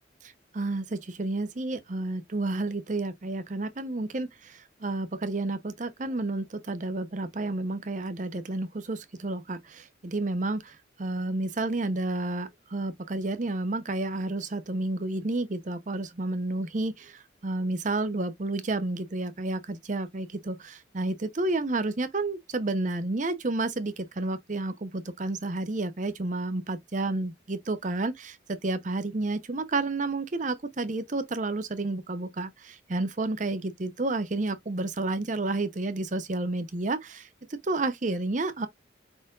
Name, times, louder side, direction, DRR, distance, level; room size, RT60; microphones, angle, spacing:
voice 1, 0.2-38.7, right 2 dB, 40° right, 0.6 m, -31 dB
5.0 x 4.4 x 2.3 m
head